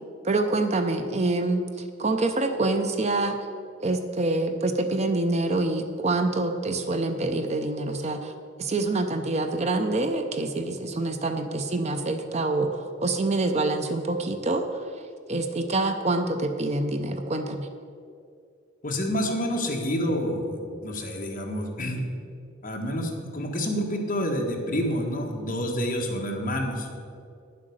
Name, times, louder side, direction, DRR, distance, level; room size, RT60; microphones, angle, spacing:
voice 1, 0.2-3.4 3.8-8.3 8.6-14.7 15.3-17.7, right 2 dB, 35° right, 7 dB, 0.6 m, -26 dB
voice 2, 18.8-22.0 22.6-26.9, equal, 40° left, 0 dB, 1.5 m, -28 dB
9.8 x 7.7 x 6.4 m, 2.4 s
head